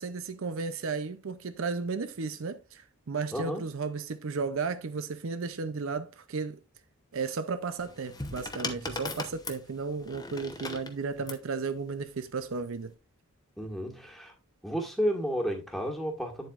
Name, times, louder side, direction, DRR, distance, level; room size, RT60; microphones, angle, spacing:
voice 1, 0.0-6.6 7.1-12.9, right 4 dB, 65° right, 0.5 m, -34 dB
voice 2, 3.3-3.7 13.6-14.3 14.6-16.5, equal, ahead, 1.6 m, -32 dB
sound 1, 7.8-11.5 12.5-12.9, left 3 dB, 15° left, 0.9 m, -38 dB
8.9 x 7.6 x 2.5 m
head